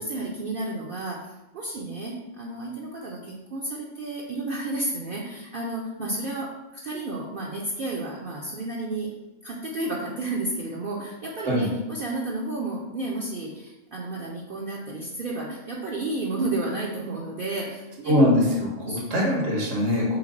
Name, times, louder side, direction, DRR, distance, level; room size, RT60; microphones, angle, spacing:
voice 1, 0.0-9.1 9.4-18.2 18.9-19.0, right 2 dB, 60° right, -3 dB, 0.6 m, -32 dB
voice 2, 18.1-20.2, left 1 dB, 80° right, -2 dB, 1.4 m, -22 dB
3.4 x 3.2 x 3.8 m, 1.0 s
omnidirectional pair, 1.3 m